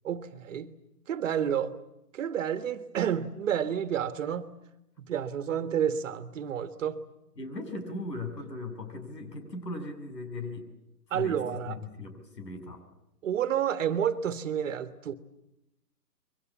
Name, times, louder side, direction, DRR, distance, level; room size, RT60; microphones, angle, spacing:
voice 1, 0.0-0.7 1.1-1.7 2.1-4.5 5.1-7.0 11.1-11.8 13.2-15.1, right 9 dB, 50° right, 11 dB, 1.6 m, -30 dB
voice 2, 7.4-10.7 11.1-12.8, left 2 dB, 90° left, 8 dB, 7.3 m, -38 dB
28.0 x 23.5 x 7.3 m, 0.87 s
hypercardioid pair, 155°, 48 cm